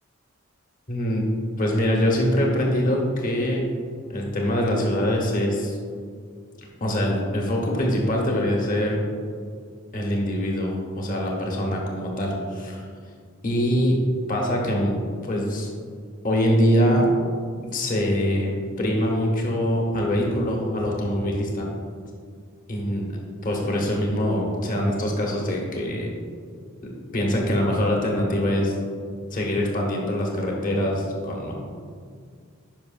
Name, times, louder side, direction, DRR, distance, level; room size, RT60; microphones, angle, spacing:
voice 1, 0.9-1.2 1.6-3.7 4.1-5.8 6.8-9.0 9.9-12.8 13.4-14.0 14.3-14.9 15.2-15.7 16.2-17.1 17.7-21.7 22.7-23.0 23.4-26.1 26.8-28.8 29.3-31.5, equal, 40° left, -1 dB, 1.1 m, -23 dB
10.5 x 5.5 x 2.5 m, 2.1 s
head